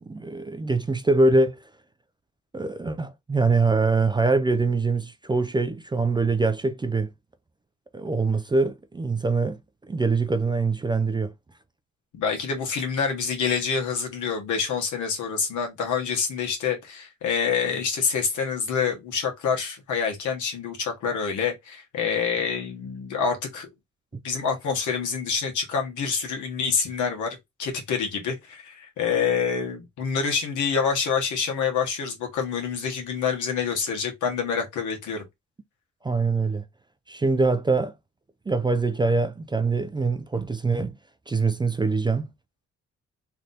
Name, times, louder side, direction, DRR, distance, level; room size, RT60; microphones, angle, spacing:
voice 1, 0.1-1.6 2.5-7.1 7.9-9.6 9.9-11.3 36.0-36.6 37.1-37.9 38.5-40.9 41.3-42.3, right 3 dB, 15° right, 0.4 m, -23 dB
voice 2, 12.1-23.7 24.2-35.2, left 6 dB, 80° left, 1.4 m, -27 dB
3.3 x 2.7 x 3.9 m
cardioid pair, 90°, 30 cm